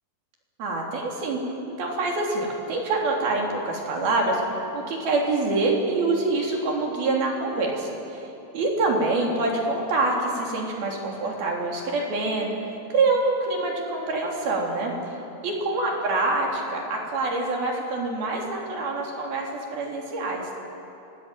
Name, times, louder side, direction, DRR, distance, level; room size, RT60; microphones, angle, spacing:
voice 1, 0.6-1.4 1.8-8.3 8.5-14.9 15.4-20.5, right 2 dB, 65° right, -1 dB, 5.1 m, -26 dB
26.5 x 20.0 x 9.2 m, 2.9 s
omnidirectional pair, 4.7 m